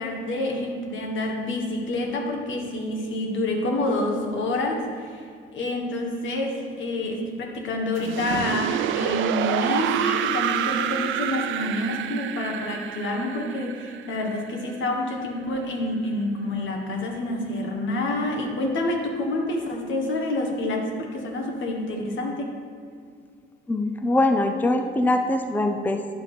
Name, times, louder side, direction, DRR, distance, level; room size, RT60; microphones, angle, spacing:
voice 1, 0.0-5.2 5.5-22.5, left 1 dB, 70° left, 2 dB, 1.4 m, -28 dB
sound 1, 8.0-14.9, right 10 dB, 75° right, 0.4 m, -28 dB
voice 2, 23.7-26.0, left 2 dB, 10° left, 6 dB, 0.5 m, -22 dB
10.0 x 3.5 x 6.7 m, 2.3 s
cardioid pair, 90°, 20 cm